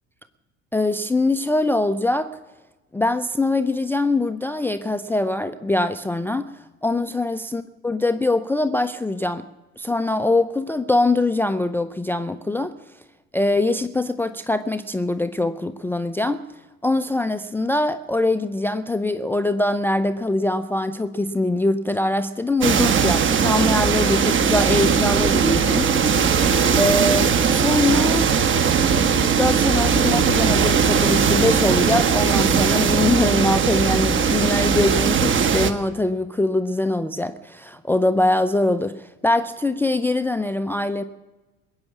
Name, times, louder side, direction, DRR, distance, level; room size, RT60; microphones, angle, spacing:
voice 1, 0.7-2.4 2.9-9.4 9.8-12.7 13.3-16.4 16.8-25.9 26.8-28.3 29.4-41.0, left 2 dB, 5° left, 12 dB, 0.6 m, -23 dB
sound 1, 22.6-35.7, right 6 dB, 30° right, 1.3 m, -19 dB
21.0 x 8.8 x 7.2 m, 1.1 s
figure-of-eight pair, 65°, 40 cm